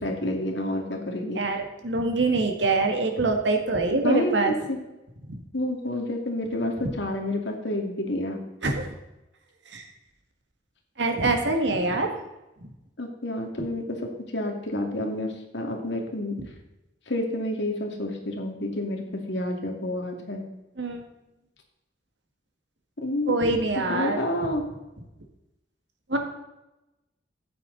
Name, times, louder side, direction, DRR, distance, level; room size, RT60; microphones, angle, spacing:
voice 1, 0.0-1.4 4.0-4.8 5.5-8.4 13.0-16.4 17.1-20.4 23.0-24.6, left 1 dB, 75° left, 2 dB, 2.3 m, -29 dB
voice 2, 1.3-4.5 5.3-5.4 8.6-8.9 9.7-9.8 11.0-12.1 12.6-12.7 20.8-21.0 23.3-24.2 26.1-26.2, right 2 dB, 80° right, 4 dB, 1.8 m, -24 dB
12.5 x 9.1 x 4.0 m, 0.95 s
head